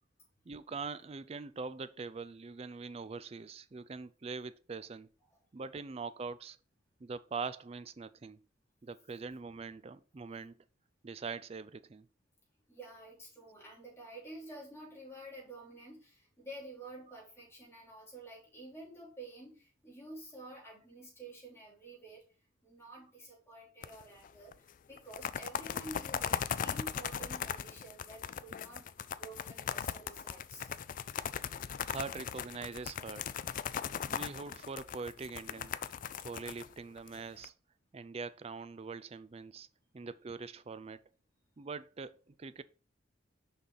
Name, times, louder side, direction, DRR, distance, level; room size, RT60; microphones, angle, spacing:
voice 1, 0.5-5.1 5.5-6.6 7.0-8.4 8.8-10.6 11.0-12.1 31.9-33.3 34.1-35.7 36.2-37.5 37.9-39.7 39.9-41.0 41.6-42.6, right 4 dB, 30° right, 0.4 m, -43 dB
voice 2, 12.7-22.2 22.6-30.7, right 1 dB, 15° left, 3.2 m, -50 dB
sound 1, 23.8-24.3 24.5-24.6 25.0-37.5, left 8 dB, 45° left, 0.3 m, -38 dB
6.4 x 5.4 x 4.0 m
head